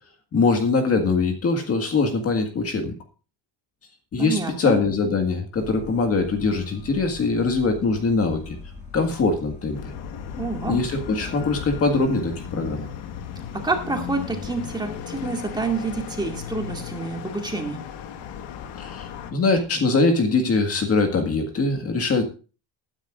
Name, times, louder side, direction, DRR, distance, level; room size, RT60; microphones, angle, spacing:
voice 1, 0.3-2.9 4.1-8.6 8.9-9.9 10.7-12.9 18.8-22.2, left 3 dB, 30° left, 4 dB, 1.9 m, -22 dB
voice 2, 4.2-4.7 10.4-10.8 13.6-17.8, right 3 dB, 10° right, 2 dB, 2.2 m, -28 dB
sound 1, 5.5-11.8, left 4 dB, 15° left, 6.1 m, -41 dB
sound 2, 9.7-19.3, left 8 dB, 70° left, 1.7 m, -36 dB
20.5 x 10.0 x 2.5 m, 0.34 s
cardioid pair, 170°, 45 cm